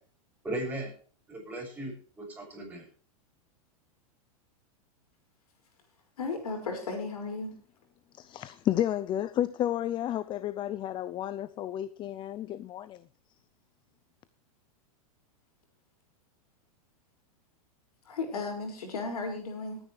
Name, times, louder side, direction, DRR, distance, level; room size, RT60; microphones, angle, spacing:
voice 1, 0.4-0.9 1.3-2.9, right 1 dB, 10° right, 6.9 m, -37 dB
voice 2, 6.2-7.5 10.1-10.2 18.0-19.8, left 3 dB, 90° left, 5.7 m, -35 dB
voice 3, 8.1-13.0, left 12 dB, 25° left, 0.5 m, -31 dB
20.0 x 9.9 x 3.3 m
hypercardioid pair, 130°, 19 cm